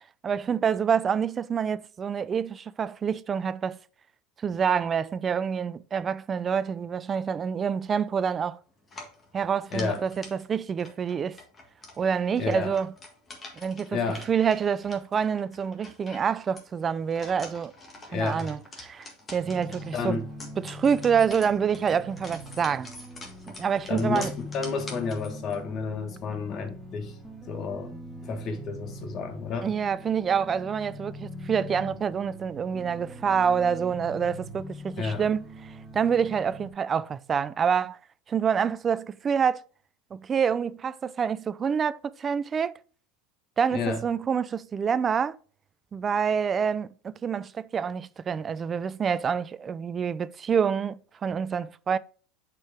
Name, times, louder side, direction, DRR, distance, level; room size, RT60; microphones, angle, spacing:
voice 1, 0.2-3.8 4.4-8.6 9.3-11.4 12.0-12.9 13.6-14.0 14.3-17.7 18.1-20.2 20.6-22.9 23.5-24.3 29.6-38.0 38.3-39.6 40.1-42.7 43.6-45.4 45.9-52.0, right 7 dB, 20° right, 0.3 m, -27 dB
sound 1, 8.8-25.6, left 2 dB, 20° left, 1.6 m, -47 dB
voice 2, 9.7-10.0 12.4-12.7 13.9-14.3 18.1-18.5 19.9-20.3 23.9-27.2 27.5-27.9 28.2-29.7 35.0-35.3 43.7-44.0, left 4 dB, 35° left, 1.3 m, -31 dB
sound 2, 19.4-36.7, left 1 dB, ahead, 1.1 m, -42 dB
7.7 x 4.5 x 3.4 m
supercardioid pair, 145°, 0 cm